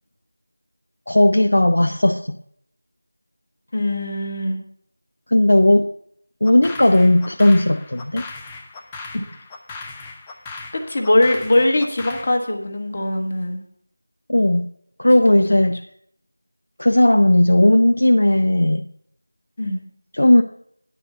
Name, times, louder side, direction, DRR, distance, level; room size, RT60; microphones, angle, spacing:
voice 1, 1.1-2.4 5.3-5.9 6.4-8.3 14.3-14.7 15.0-15.8 16.8-18.9 20.1-20.4, left 1 dB, 60° left, 6 dB, 0.5 m, -15 dB
voice 2, 3.7-4.6 9.1-9.2 10.9-13.6 15.3-15.4 19.6-19.8, left 1 dB, 35° left, 4 dB, 1.3 m, -21 dB
sound 1, 6.4-12.4, left 3 dB, 10° left, 0.4 m, -38 dB
10.0 x 4.5 x 7.4 m, 0.67 s
figure-of-eight pair, 170°, 0 cm